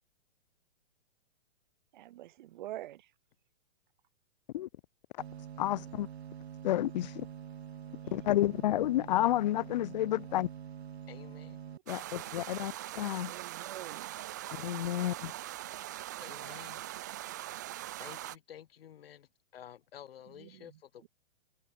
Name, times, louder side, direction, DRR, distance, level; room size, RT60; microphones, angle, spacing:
voice 1, 1.9-3.1 7.8-8.2 10.0-10.1 11.7-12.1 13.2-14.2 20.3-21.1, right 14 dB, 50° right, 2.6 m, -47 dB
sound 1, 5.2-11.8, right 9 dB, 80° right, 1.9 m, -46 dB
voice 2, 5.6-6.1 6.6-7.2 8.1-10.5 11.9-13.3 14.5-15.3, left 14 dB, 45° left, 0.5 m, -30 dB
voice 3, 11.1-11.6 16.2-16.9 18.0-21.1, left 10 dB, 65° left, 4.8 m, -51 dB
sound 2, 11.9-18.4, right 14 dB, 20° right, 0.3 m, -42 dB
hypercardioid pair, 155°, 32 cm